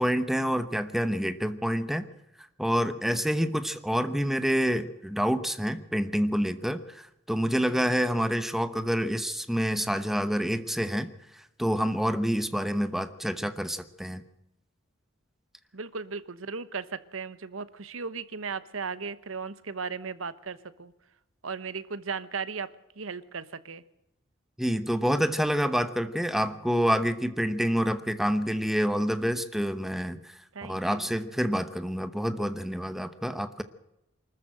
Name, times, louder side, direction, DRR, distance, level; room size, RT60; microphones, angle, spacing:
voice 1, 0.0-2.1 2.6-11.1 11.6-14.2 24.6-30.3 30.6-33.6, equal, ahead, 11 dB, 1.0 m, -27 dB
voice 2, 15.7-20.9 21.4-23.8 30.5-31.1, right 5 dB, 80° right, 15 dB, 1.1 m, -36 dB
24.5 x 13.5 x 7.8 m, 0.92 s
head